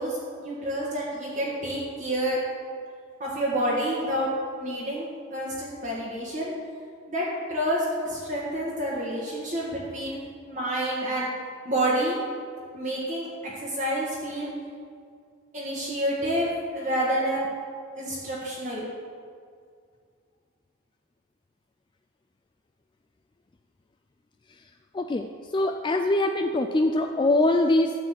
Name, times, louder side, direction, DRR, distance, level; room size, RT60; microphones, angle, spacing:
voice 1, 0.0-2.4 3.2-4.3 4.6-6.5 7.1-11.3 11.7-12.2 12.7-14.5 15.5-17.5 18.0-18.9, right 1 dB, 35° right, -7 dB, 1.6 m, -29 dB
voice 2, 24.9-25.3 25.5-27.9, left 2 dB, 20° left, 4 dB, 0.3 m, -23 dB
12.0 x 4.1 x 7.6 m, 2.2 s
head